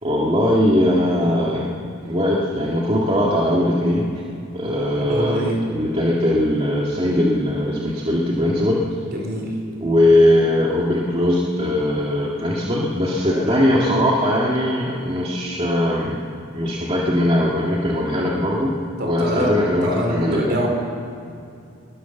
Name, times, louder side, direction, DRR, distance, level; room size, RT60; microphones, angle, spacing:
voice 1, 0.0-1.7 2.0-4.2 4.5-8.8 9.8-16.2 16.5-18.7 19.0-20.6, left 1 dB, 30° right, -4 dB, 2.1 m, -20 dB
voice 2, 4.9-5.6 9.1-9.5 13.3-13.6 19.0-19.5 19.8-20.7, equal, 50° right, 1 dB, 4.8 m, -25 dB
21.5 x 21.5 x 7.1 m, 2.5 s
head